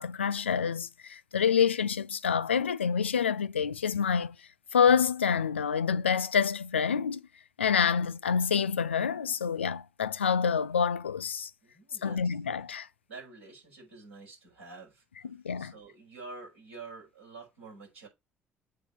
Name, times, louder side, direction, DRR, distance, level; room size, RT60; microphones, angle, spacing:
voice 1, 0.0-4.4 4.7-7.2 7.6-11.5 12.0-12.9 15.3-15.7, left 7 dB, 90° left, 0.4 m, -27 dB
voice 2, 11.6-12.3 13.1-15.0 15.6-18.1, right 4 dB, 85° right, 6.2 m, -48 dB
8.3 x 3.6 x 5.9 m
figure-of-eight pair, 50°, 6 cm